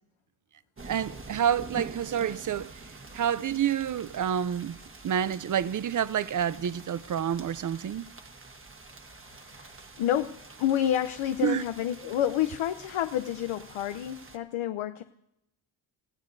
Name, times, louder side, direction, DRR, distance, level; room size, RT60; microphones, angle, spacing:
sound 1, 0.8-14.4, right 3 dB, 25° right, 1.3 m, -47 dB
voice 1, 0.8-4.8 5.0-8.1 11.4-11.6, right 9 dB, 40° right, 0.5 m, -28 dB
voice 2, 9.1-15.0, left 11 dB, 80° left, 0.7 m, -29 dB
26.5 x 16.5 x 2.7 m
wide cardioid pair, 110°, 48 cm